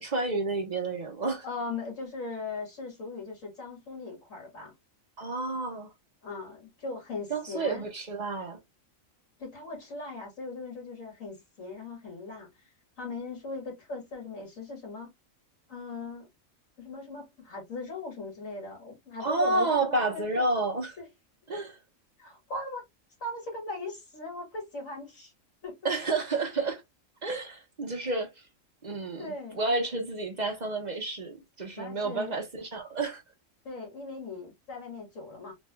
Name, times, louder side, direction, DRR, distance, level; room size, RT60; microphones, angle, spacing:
voice 1, 0.0-1.5 5.2-5.9 7.3-8.6 19.2-21.0 21.5-21.8 25.8-26.8 27.2-28.3 28.8-33.2, right 2 dB, 35° right, 1.0 m, -30 dB
voice 2, 1.4-4.7 6.2-7.9 9.4-12.5 13.0-15.1 15.7-16.3 16.8-20.5 21.0-21.1 22.2-22.8 23.2-25.3 25.6-25.8 29.2-29.6 31.8-32.3 33.6-35.5, left 3 dB, 70° left, 2.5 m, -39 dB
4.1 x 3.3 x 2.2 m
omnidirectional pair, 1.4 m